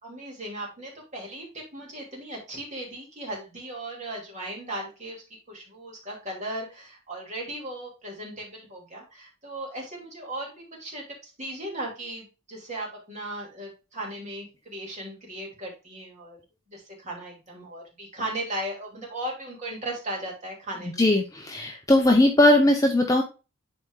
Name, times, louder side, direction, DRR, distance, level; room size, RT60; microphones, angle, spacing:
voice 1, 0.0-16.4 16.7-21.1, right 1 dB, 35° right, -2 dB, 2.5 m, -37 dB
voice 2, 21.0-23.2, left 1 dB, 15° left, 2 dB, 0.7 m, -19 dB
11.0 x 4.3 x 2.3 m, 0.31 s
head